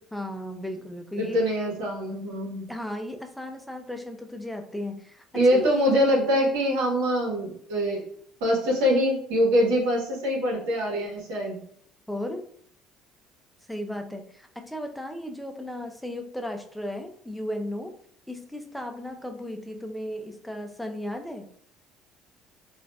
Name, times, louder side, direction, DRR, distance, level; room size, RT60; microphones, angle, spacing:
voice 1, 0.1-1.4 2.7-6.1 12.1-12.4 13.7-18.0 18.3-21.5, left 1 dB, 5° left, 5 dB, 0.5 m, -35 dB
voice 2, 1.2-2.7 5.3-8.1 8.4-11.6, equal, 85° right, -3 dB, 1.1 m, -24 dB
3.8 x 2.5 x 2.2 m, 0.62 s
supercardioid pair, 80°, 0 cm